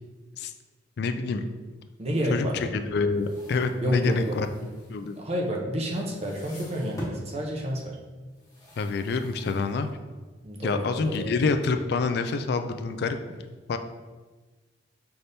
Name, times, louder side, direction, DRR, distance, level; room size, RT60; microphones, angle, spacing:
voice 1, 1.0-1.5 2.3-4.5 4.9-5.2 8.8-9.9 10.6-13.2 13.7-13.8, left 4 dB, 60° left, 8 dB, 0.3 m, -27 dB
voice 2, 2.0-2.6 3.8-4.4 5.2-8.0 10.4-11.3, equal, 35° right, -1 dB, 0.7 m, -30 dB
sound 1, 3.0-5.8 6.1-7.3 8.3-10.2, equal, 20° left, 1.3 m, -45 dB
5.8 x 3.4 x 2.7 m, 1.3 s
head